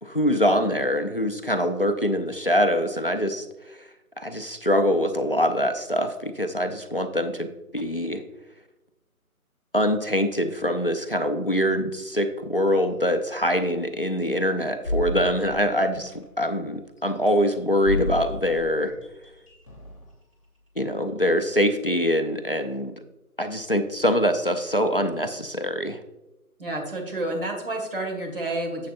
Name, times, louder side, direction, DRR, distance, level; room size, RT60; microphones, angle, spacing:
voice 1, 0.0-3.8 4.2-7.5 7.7-8.2 9.7-18.9 20.8-22.9 23.4-26.0, equal, 40° left, 8 dB, 0.6 m, -24 dB
sound 1, 12.9-13.0 13.7-13.8 14.8-16.5 17.0-20.1 20.9-21.0, left 1 dB, 20° left, 1.4 m, -33 dB
voice 2, 26.6-28.9, right 2 dB, 40° right, 1 dB, 1.9 m, -29 dB
11.0 x 7.5 x 2.5 m, 0.98 s
figure-of-eight pair, 180°, 44 cm